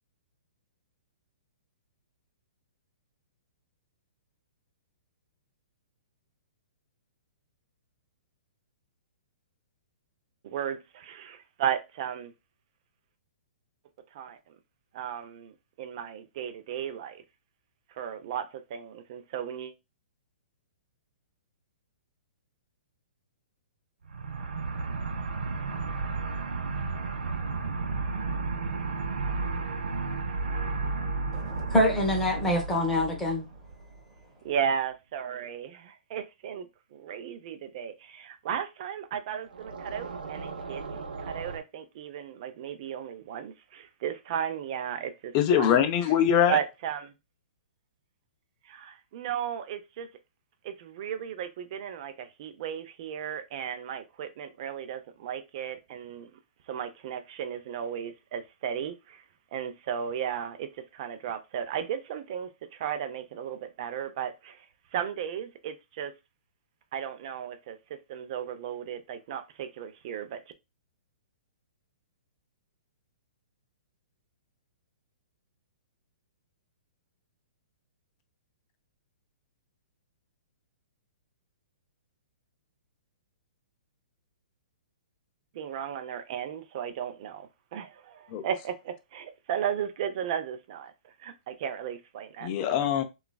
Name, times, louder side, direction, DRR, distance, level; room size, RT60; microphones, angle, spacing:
voice 1, 10.4-12.3 14.1-14.6 14.9-17.2 17.9-19.7 34.4-45.8 46.5-47.1 48.6-50.1 50.6-56.3 56.7-59.2 59.5-64.6 64.9-66.1 66.9-70.4 85.5-92.5, right 8 dB, 45° right, 0.5 m, -35 dB
sound 1, 24.0-34.0 39.5-41.6, right 3 dB, 85° right, 0.6 m, -33 dB
voice 2, 31.3-33.4, left 1 dB, 5° left, 0.8 m, -25 dB
voice 3, 45.3-46.6 88.3-88.4 92.4-93.0, left 9 dB, 30° left, 0.4 m, -23 dB
3.1 x 2.4 x 2.2 m
hypercardioid pair, 155°, 5 cm